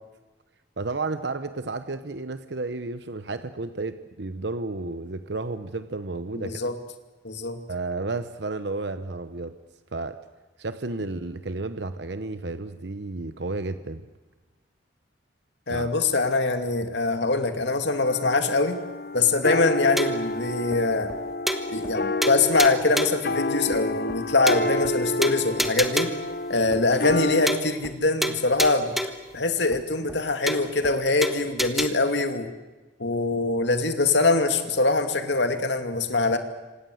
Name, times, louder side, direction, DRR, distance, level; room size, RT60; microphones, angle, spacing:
voice 1, 0.8-6.6 7.7-9.5 9.9-10.2 10.6-14.1 15.7-15.9, right 3 dB, 65° right, 11 dB, 0.9 m, -32 dB
voice 2, 6.3-6.7 7.2-7.6 15.7-18.8 19.1-21.1 21.7-26.1 26.5-28.9 29.3-32.5 33.0-36.4, left 3 dB, 70° left, 7 dB, 2.4 m, -23 dB
sound 1, 18.0-27.6, left 2 dB, 50° left, 1.0 m, -29 dB
sound 2, 20.0-20.3 20.7-20.8 21.1-21.2 21.5-22.0 22.2-23.3 23.7-23.8 24.1-24.2 24.5-24.9 25.2-26.3 26.7-26.8 27.1-27.2 27.5-28.0 28.2-29.3 29.7-29.8 30.1-30.2 30.5-30.9 31.2-31.9, equal, ahead, 1.5 m, -29 dB
28.0 x 26.0 x 7.9 m, 1.2 s
head